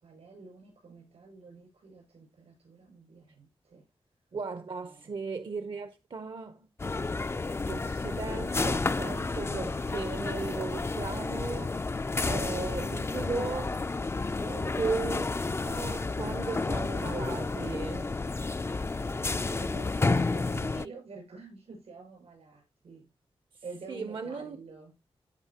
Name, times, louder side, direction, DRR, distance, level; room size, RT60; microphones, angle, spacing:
voice 1, 0.0-3.8 14.4-14.7 19.3-23.0 23.6-24.9, right 4 dB, 85° right, 6.3 m, -48 dB
voice 2, 4.3-6.7 7.5-11.8 12.3-13.8 14.8-15.3 15.6-18.2 20.1-20.2 20.6-20.9 23.9-24.6, right 4 dB, 55° right, 0.7 m, -36 dB
sound 1, 6.8-20.9, left 3 dB, 25° left, 0.4 m, -31 dB
14.0 x 5.2 x 2.8 m
cardioid pair, 65°, 10 cm